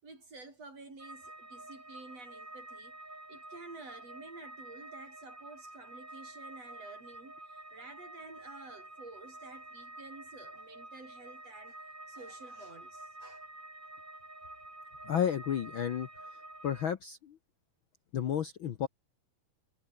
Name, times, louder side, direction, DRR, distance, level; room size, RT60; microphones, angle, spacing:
voice 1, 0.0-3.0 3.3-13.5, right 3 dB, 50° right, 8.2 m, -51 dB
sound 1, 1.0-16.9, right 2 dB, 15° right, 3.9 m, -49 dB
voice 2, 15.0-16.1 16.6-17.4 18.1-18.9, left 9 dB, 70° left, 1.1 m, -32 dB
omnidirectional pair, 3.8 m